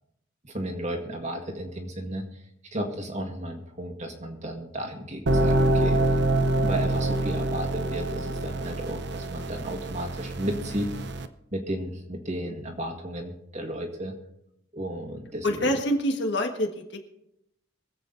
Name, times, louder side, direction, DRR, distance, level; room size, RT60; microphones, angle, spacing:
voice 1, 0.4-2.4 2.7-6.2 6.6-10.9 11.5-14.1 14.7-15.7, right 1 dB, 35° right, 2 dB, 1.9 m, -33 dB
sound 1, 5.3-11.3, right 1 dB, 50° right, 0.7 m, -26 dB
voice 2, 15.4-17.0, equal, 55° left, 4 dB, 1.6 m, -26 dB
23.5 x 8.0 x 3.9 m, 0.80 s
head